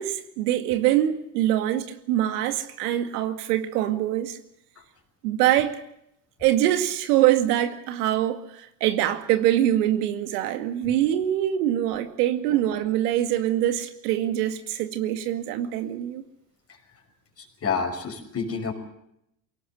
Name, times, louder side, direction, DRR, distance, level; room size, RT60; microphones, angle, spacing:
voice 1, 0.0-4.4 5.2-5.8 6.4-16.2, right 12 dB, 70° right, 2.2 m, -24 dB
voice 2, 17.4-18.7, left 5 dB, 30° left, 5.8 m, -30 dB
22.5 x 18.0 x 7.9 m
hypercardioid pair, 95°, 48 cm